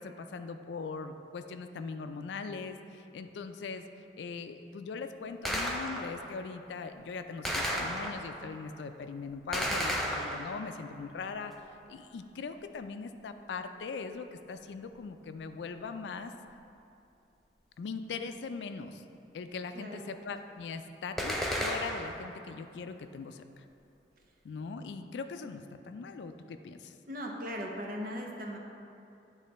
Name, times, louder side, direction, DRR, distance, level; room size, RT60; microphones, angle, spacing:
voice 1, 0.0-3.8 4.2-16.3 17.8-19.0 19.3-23.6 24.4-26.9, left 4 dB, 80° left, 8 dB, 0.3 m, -40 dB
Gunshot gunfire, 5.5-6.3 7.5-8.4 9.5-10.8 21.2-22.3, equal, ahead, 0.4 m, -33 dB
voice 2, 19.7-20.1 27.1-28.6, equal, 50° right, 0 dB, 0.7 m, -38 dB
9.4 x 3.2 x 4.1 m, 2.7 s
head